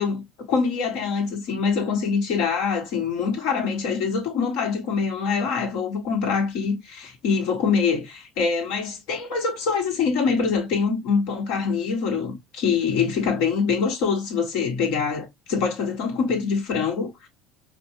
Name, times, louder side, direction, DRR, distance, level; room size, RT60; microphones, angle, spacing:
voice 1, 0.0-17.3, left 5 dB, 75° left, 1.7 m, -24 dB
5.0 x 2.3 x 3.1 m
supercardioid pair, 100°, 0 cm